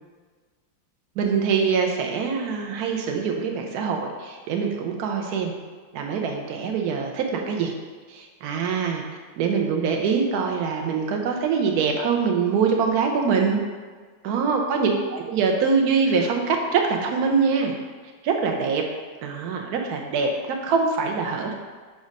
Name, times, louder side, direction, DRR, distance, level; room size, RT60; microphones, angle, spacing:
voice 1, 1.2-5.5 5.9-7.7 8.1-9.0 9.4-13.6 14.2-17.8 18.2-18.8 19.2-21.5, right 5 dB, 65° right, 2 dB, 1.1 m, -24 dB
7.2 x 2.5 x 5.2 m, 1.5 s
omnidirectional pair, 2.0 m